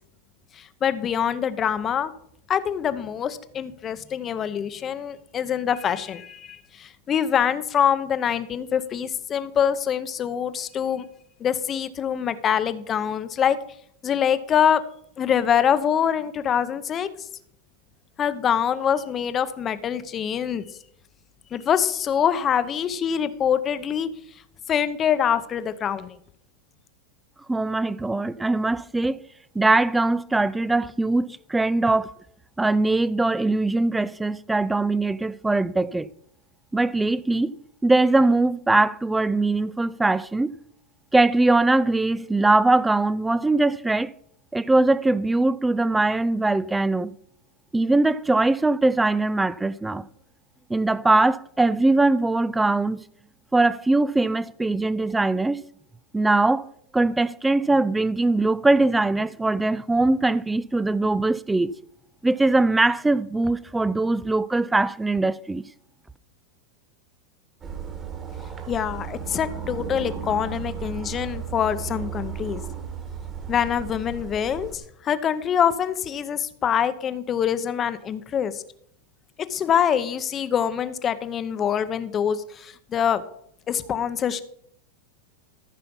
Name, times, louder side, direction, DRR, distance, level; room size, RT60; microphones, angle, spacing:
voice 1, 0.6-2.1 2.5-11.1 11.4-13.6 14.0-14.8 15.2-17.1 18.2-20.7 21.5-24.1 24.7-26.2 68.7-72.6 73.5-78.6 79.4-83.2 83.7-84.4, left 8 dB, 25° left, 0.8 m, -24 dB
voice 2, 27.5-29.2 29.6-32.1 32.6-36.1 36.7-37.5 37.8-40.5 41.1-44.1 44.5-47.1 47.7-50.1 50.7-53.0 53.5-55.6 56.1-56.7 56.9-61.8 62.2-65.6, right 2 dB, 5° right, 0.4 m, -21 dB
sound 1, 67.6-74.8, right 7 dB, 25° right, 1.6 m, -35 dB
14.0 x 5.7 x 5.4 m
supercardioid pair, 135°, 0 cm